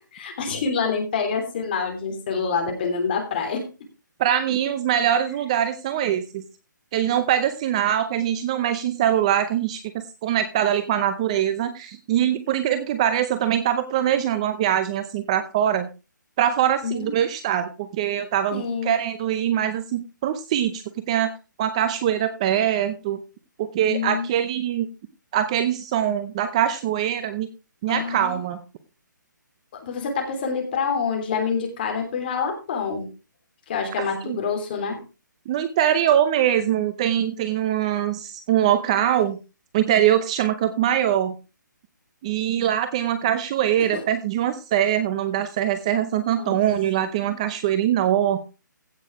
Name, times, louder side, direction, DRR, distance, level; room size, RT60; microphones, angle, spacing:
voice 1, 0.1-3.6 16.8-17.1 18.5-18.9 23.9-24.4 27.9-28.4 29.8-33.0 33.7-35.0 43.8-44.0 46.4-46.6 47.3-47.4, left 5 dB, 30° left, 3 dB, 3.4 m, -27 dB
voice 2, 4.2-6.4 6.9-15.9 16.4-21.3 21.6-23.2 23.6-24.9 25.3-27.5 27.8-28.6 34.0-34.4 35.5-39.4 39.7-41.3 42.2-48.4, right 10 dB, 20° right, 11 dB, 0.7 m, -23 dB
15.5 x 6.4 x 4.7 m, 0.31 s
hypercardioid pair, 170°, 11 cm